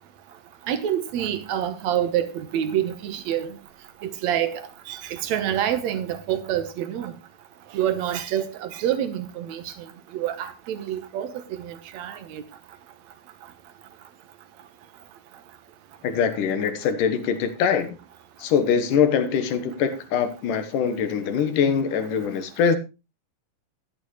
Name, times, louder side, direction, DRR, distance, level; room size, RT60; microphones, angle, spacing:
voice 1, 0.7-3.5 4.0-4.6 4.9-7.1 7.7-9.7 10.1-11.3 11.6-12.4, right 10 dB, 65° right, 2.2 m, -27 dB
voice 2, 16.0-18.0 18.4-22.8, left 7 dB, 70° left, 2.8 m, -23 dB
13.5 x 11.5 x 3.1 m
omnidirectional pair, 3.9 m